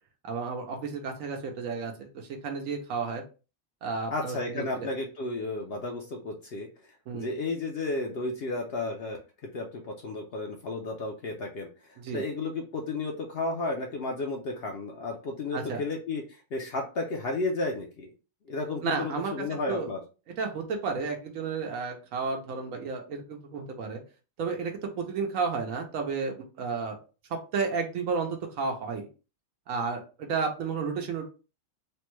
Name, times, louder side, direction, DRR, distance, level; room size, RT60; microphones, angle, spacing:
voice 1, 0.2-3.2 3.8-4.9 7.1-7.3 12.0-12.2 15.5-15.8 18.8-19.9 20.4-24.0 24.4-27.0 27.3-29.1 29.7-31.3, right 5 dB, 80° right, 3 dB, 1.0 m, -32 dB
voice 2, 4.1-6.7 7.1-9.2 9.5-18.1 18.5-20.0, left 2 dB, 65° left, 1 dB, 0.7 m, -33 dB
3.3 x 2.1 x 3.0 m, 0.34 s
omnidirectional pair, 1.4 m